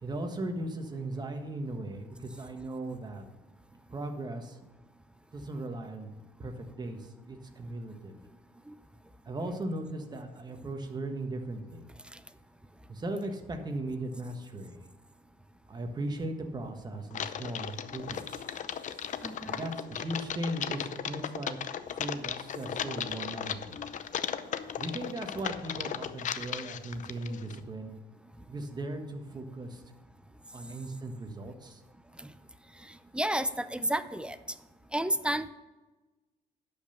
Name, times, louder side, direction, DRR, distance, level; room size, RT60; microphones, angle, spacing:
voice 1, 0.0-3.2 3.9-4.5 5.3-6.1 6.4-7.0 7.3-8.2 9.3-11.8 12.9-14.8 15.7-18.2 19.5-21.6 22.0-23.8 24.8-27.9 28.5-29.7 30.5-31.8, right 1 dB, 25° right, 5 dB, 1.3 m, -37 dB
Typing, 17.1-27.6, left 9 dB, 50° left, 0.6 m, -36 dB
voice 2, 19.2-19.7 32.2-32.3 32.8-34.4 34.9-35.5, right 1 dB, 5° right, 13 dB, 0.5 m, -32 dB
11.5 x 5.3 x 6.9 m, 1.2 s
cardioid pair, 110°, 17 cm